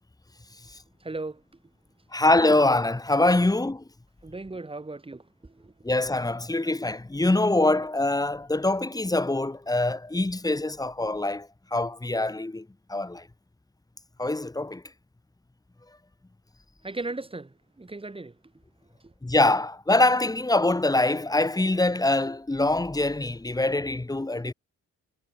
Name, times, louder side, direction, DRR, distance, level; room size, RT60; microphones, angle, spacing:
voice 1, 1.0-1.4 4.2-5.7 16.8-18.4 19.0-19.1, right 2 dB, 20° right, 6.9 m, -37 dB
voice 2, 2.1-3.8 5.8-13.3 14.2-14.8 19.2-24.5, left 2 dB, 10° left, 2.1 m, -24 dB
cardioid pair, 90°, 30 cm